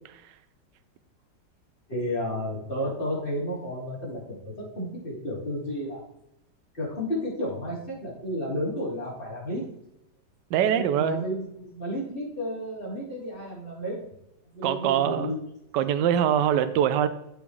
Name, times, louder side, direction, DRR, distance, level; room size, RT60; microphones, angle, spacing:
voice 1, 1.9-6.0 6.7-9.6 10.6-14.0 14.5-15.4, equal, 30° left, -7 dB, 3.5 m, -32 dB
voice 2, 10.5-11.2 14.6-15.3 15.7-17.1, right 9 dB, 80° right, 11 dB, 1.3 m, -23 dB
13.5 x 4.9 x 3.2 m, 0.83 s
omnidirectional pair, 1.9 m